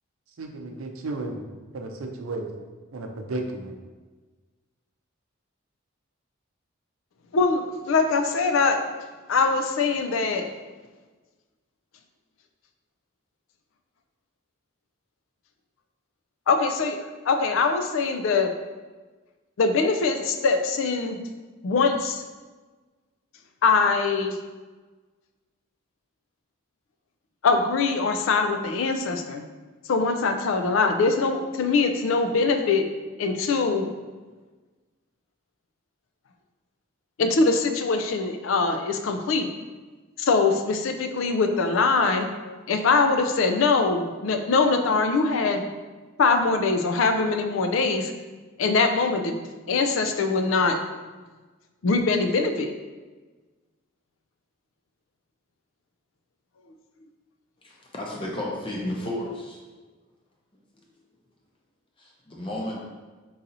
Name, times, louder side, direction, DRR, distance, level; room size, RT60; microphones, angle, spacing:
voice 1, 0.4-1.4 1.7-2.5 2.9-3.7, right 2 dB, 85° right, 4 dB, 0.5 m, -33 dB
voice 2, 7.3-8.8 9.3-10.5 16.5-17.0 17.3-18.5 19.6-21.2 21.6-22.2 23.6-24.4 27.4-29.4 29.9-32.8 33.2-33.9 37.2-39.5 40.2-42.3 42.7-45.7 46.2-48.1 48.6-49.3 49.7-50.8 51.8-52.7, left 4 dB, 65° left, 6 dB, 0.4 m, -22 dB
voice 3, 57.9-59.6 60.8-60.9 62.0-62.8, left 1 dB, 25° left, -3 dB, 0.7 m, -32 dB
3.9 x 2.6 x 4.1 m, 1.3 s
head